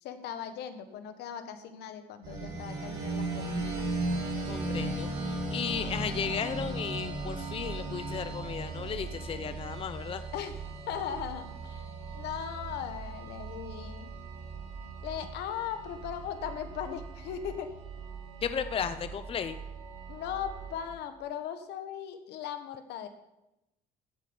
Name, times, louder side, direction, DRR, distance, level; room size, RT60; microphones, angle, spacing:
voice 1, 0.0-4.0 10.3-10.5 10.9-11.9 12.1-14.1 15.0-17.7 20.1-23.1, left 9 dB, 80° left, 8 dB, 1.3 m, -38 dB
Level Up, 2.2-20.9, right 2 dB, 85° right, 4.5 m, -37 dB
voice 2, 4.5-10.2 18.4-19.6, left 7 dB, 35° left, 11 dB, 0.6 m, -35 dB
15.5 x 5.2 x 7.0 m, 0.91 s
cardioid pair, 110°, 17 cm